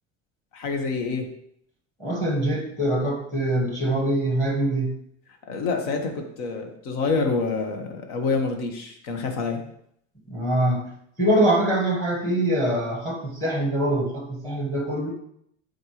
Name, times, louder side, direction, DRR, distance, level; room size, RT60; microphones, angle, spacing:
voice 1, 0.5-1.3 5.5-9.6, left 4 dB, 65° left, 4 dB, 1.7 m, -27 dB
voice 2, 2.0-4.9 10.3-10.9 11.2-15.1, right 1 dB, 10° left, 0 dB, 1.5 m, -24 dB
13.5 x 4.7 x 3.2 m, 0.69 s
cardioid pair, 170°, 37 cm